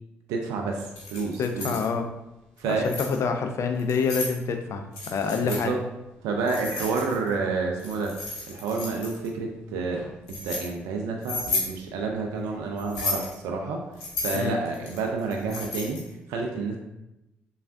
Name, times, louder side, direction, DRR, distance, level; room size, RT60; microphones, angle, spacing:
voice 1, 0.3-1.7 2.6-2.9 5.4-5.8 6.2-8.1 8.5-10.0 10.3-13.8 14.2-16.0 16.3-16.8, right 4 dB, 75° right, 1 dB, 0.4 m, -29 dB
Keys jangling, 0.8-1.9 2.6-3.2 3.8-4.4 4.9-5.6 6.5-7.3 7.8-9.3 9.9-10.7 11.2-11.7 12.8-13.3 14.0-16.1, left 3 dB, 80° left, 0.7 m, -33 dB
voice 2, 1.4-2.0 2.6-5.7 14.3-14.6, left 5 dB, 55° left, 5 dB, 0.4 m, -27 dB
3.2 x 2.3 x 2.5 m, 0.93 s
hypercardioid pair, 45°, 6 cm